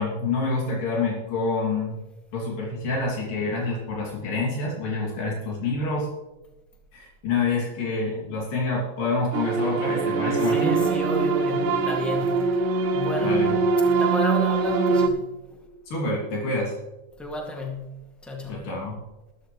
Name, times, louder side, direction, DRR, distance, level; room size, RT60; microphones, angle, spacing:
voice 1, 0.0-2.0 2.3-6.1 6.9-10.8 13.2-13.6 15.9-16.7 18.5-19.0, left 3 dB, 85° left, -3 dB, 4.7 m, -27 dB
sound 1, 9.3-15.1, right 4 dB, 80° right, 2.7 m, -23 dB
voice 2, 10.2-12.6 12.9-15.6 17.2-18.7, left 1 dB, ahead, -1 dB, 1.7 m, -33 dB
14.0 x 13.0 x 3.3 m, 1.1 s
omnidirectional pair, 3.8 m